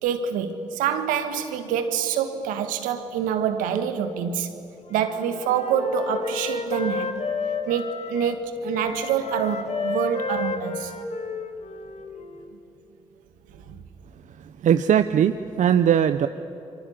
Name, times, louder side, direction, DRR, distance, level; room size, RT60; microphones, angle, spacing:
voice 1, 0.0-4.5 4.9-7.2 7.6-10.9 13.5-13.8, right 8 dB, 85° right, 1.6 m, -26 dB
Wind instrument woodwind instrument, 4.8-8.4 8.7-12.5, left 4 dB, 55° left, 2.7 m, -32 dB
voice 2, 14.6-16.3, right 9 dB, 65° right, 0.7 m, -19 dB
28.0 x 23.5 x 8.7 m
hypercardioid pair, 40°, 14 cm